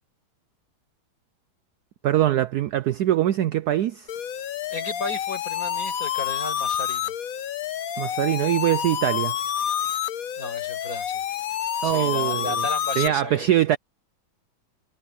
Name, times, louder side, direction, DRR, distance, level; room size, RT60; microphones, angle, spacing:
voice 1, 2.0-4.1 8.0-9.4 11.8-12.6 13.0-13.8, right 12 dB, 75° right, 0.9 m, -22 dB
sound 1, 4.1-13.1, left 10 dB, 60° left, 1.0 m, -28 dB
voice 2, 4.7-7.1 10.4-11.2 11.8-13.5, left 2 dB, 45° left, 5.5 m, -34 dB
omnidirectional pair, 2.2 m